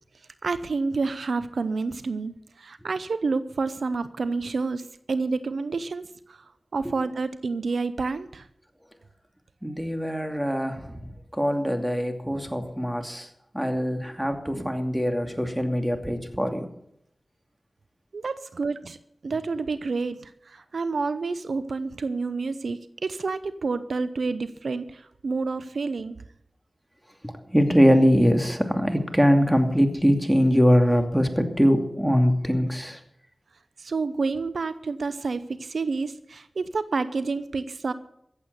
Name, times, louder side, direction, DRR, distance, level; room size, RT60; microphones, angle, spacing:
voice 1, 0.4-6.0 6.3-6.4 6.7-8.5 18.1-19.0 19.2-26.2 33.8-37.9, right 4 dB, 90° right, 13 dB, 0.7 m, -29 dB
voice 2, 9.6-13.3 13.5-16.7 27.2-33.0, equal, 5° right, 5 dB, 2.6 m, -22 dB
15.0 x 8.2 x 8.1 m, 0.76 s
cardioid pair, 40°, 0 cm